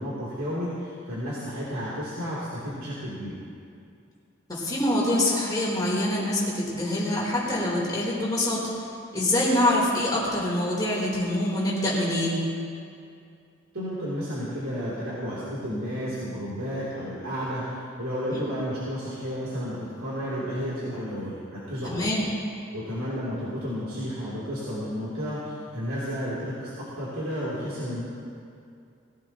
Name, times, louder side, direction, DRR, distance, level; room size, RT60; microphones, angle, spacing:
voice 1, 0.0-3.4 13.7-22.1 22.7-28.0, equal, 85° right, -9 dB, 3.3 m, -32 dB
voice 2, 4.5-8.7 9.1-12.5 18.3-18.4 21.8-22.2, left 1 dB, 20° left, -6 dB, 3.6 m, -25 dB
21.0 x 15.5 x 3.0 m, 2.4 s
head